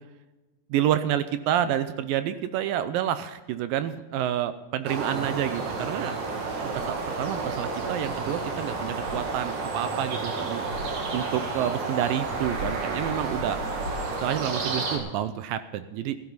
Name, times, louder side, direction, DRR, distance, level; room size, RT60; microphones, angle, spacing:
voice 1, 0.7-6.2 6.7-10.6 11.1-13.6 14.2-16.2, right 11 dB, 75° right, 11 dB, 2.1 m, -29 dB
sound 1, 4.9-15.0, right 3 dB, 55° right, 3.5 m, -31 dB
16.5 x 13.0 x 4.0 m, 1.1 s
omnidirectional pair, 4.7 m